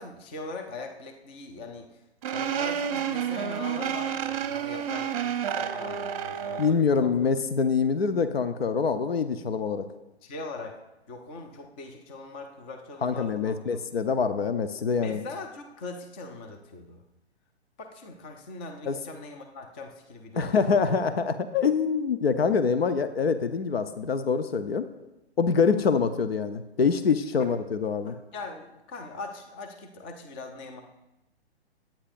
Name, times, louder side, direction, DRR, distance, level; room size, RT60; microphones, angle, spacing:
voice 1, 0.0-2.0 2.3-7.1 10.2-10.8 11.1-13.8 15.0-17.0 17.8-20.9 27.4-27.5 28.1-30.8, left 3 dB, 10° left, 5 dB, 0.4 m, -41 dB
sound 1, 2.2-6.8, right 8 dB, 35° right, 0.8 m, -30 dB
voice 2, 6.6-9.9 13.0-15.2 18.9-19.0 20.4-24.9 25.4-28.1, left 5 dB, 65° left, 10 dB, 0.8 m, -25 dB
21.0 x 8.9 x 2.6 m, 0.97 s
figure-of-eight pair, 120°, 33 cm